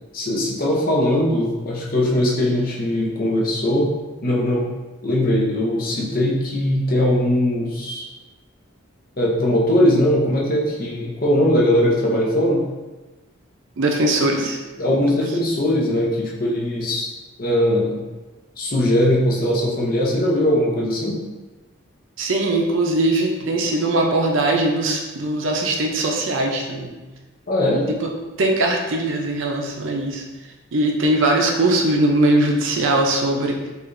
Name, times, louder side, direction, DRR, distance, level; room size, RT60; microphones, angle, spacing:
voice 1, 0.1-3.9 4.2-4.7 5.0-8.1 9.2-12.6 14.8-17.1 17.4-18.0 18.6-21.2 27.5-27.9, left 1 dB, 45° left, -3 dB, 0.7 m, -20 dB
voice 2, 13.8-14.6 14.9-15.1 22.2-26.9 28.0-28.1 28.4-30.2 30.7-33.6, right 2 dB, 70° right, 1 dB, 0.5 m, -20 dB
4.7 x 2.5 x 2.5 m, 1.2 s
head